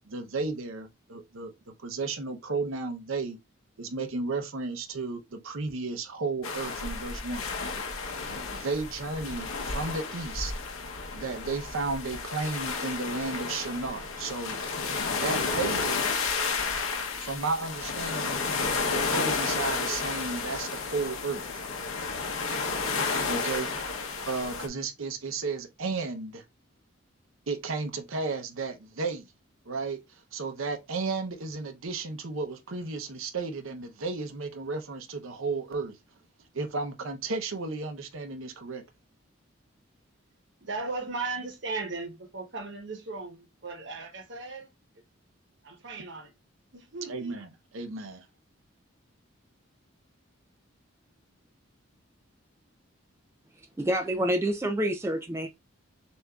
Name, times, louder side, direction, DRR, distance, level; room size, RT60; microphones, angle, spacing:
voice 1, 0.1-3.4 3.8-7.5 8.5-10.5 11.1-14.7 15.2-16.2 17.2-18.4 18.9-21.5 23.3-23.7 24.3-26.4 27.5-29.3 29.7-30.0 30.3-36.0 36.5-38.8 47.1-48.3, right 3 dB, 75° right, 0.7 m, -33 dB
sound 1, 6.4-24.7, left 4 dB, 80° left, 0.9 m, -32 dB
voice 2, 40.6-44.7 45.6-46.3 46.7-47.3, right 3 dB, 55° right, 1.1 m, -37 dB
voice 3, 53.8-55.5, right 1 dB, 10° right, 0.3 m, -27 dB
6.7 x 2.6 x 2.3 m
head